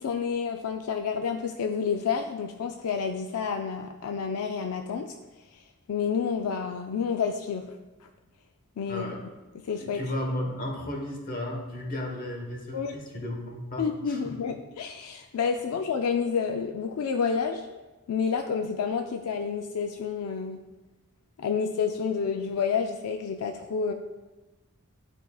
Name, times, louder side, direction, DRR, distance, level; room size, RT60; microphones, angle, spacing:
voice 1, 0.0-5.2 5.5-5.6 5.9-7.7 8.8-9.1 9.6-10.0 12.7-13.0 13.8-17.7 18.1-20.6 21.4-23.9, left 6 dB, 75° left, 5 dB, 0.4 m, -29 dB
voice 2, 8.9-9.2 9.8-14.4, left 1 dB, 40° left, 1 dB, 1.1 m, -34 dB
10.5 x 4.5 x 2.3 m, 1.1 s
head